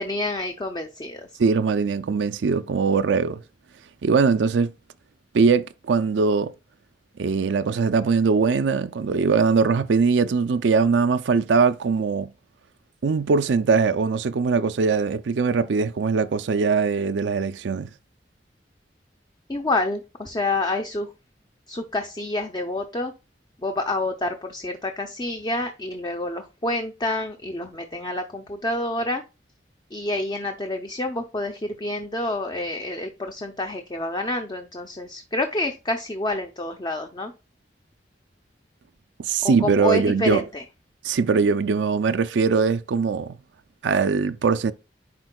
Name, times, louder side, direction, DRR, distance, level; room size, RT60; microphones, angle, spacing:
voice 1, 0.0-1.3 19.5-21.1 21.7-23.1 23.6-29.2 29.9-37.3 39.4-40.6, left 2 dB, 25° left, 0.7 m, -28 dB
voice 2, 1.4-3.4 4.0-4.7 5.3-6.5 7.2-12.3 13.0-17.9 39.2-40.4 41.0-43.4 43.8-44.7, right 5 dB, 90° right, 0.5 m, -21 dB
10.5 x 4.4 x 2.3 m
head